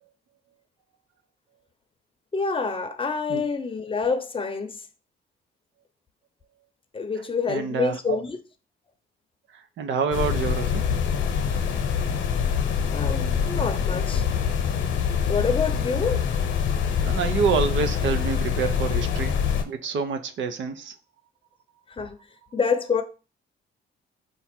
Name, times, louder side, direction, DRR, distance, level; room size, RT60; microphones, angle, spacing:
voice 1, 2.3-4.8 6.9-8.4 12.9-14.2 15.3-16.2 21.9-22.2 22.5-23.0, left 5 dB, 25° left, 0.7 m, -27 dB
voice 2, 7.5-8.2 9.8-10.8 17.0-19.4 19.6-20.9, right 5 dB, 70° right, 0.7 m, -27 dB
sound 1, 10.1-19.6, left 7 dB, 70° left, 0.9 m, -25 dB
5.1 x 2.4 x 4.3 m
cardioid pair, 90°, 20 cm